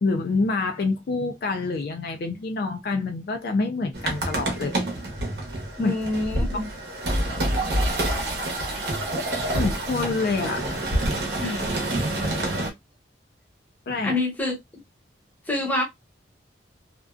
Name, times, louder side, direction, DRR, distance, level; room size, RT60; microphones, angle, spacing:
voice 1, 0.0-4.8 5.8-5.9 9.5-11.2 13.9-14.2, left 3 dB, 55° left, 0.3 m, -27 dB
sound 1, 3.9-12.7, right 1 dB, 60° right, 0.8 m, -27 dB
voice 2, 5.8-6.7 11.4-11.7 14.0-14.6 15.5-15.8, left 2 dB, 10° left, 0.7 m, -26 dB
2.5 x 2.2 x 2.3 m
head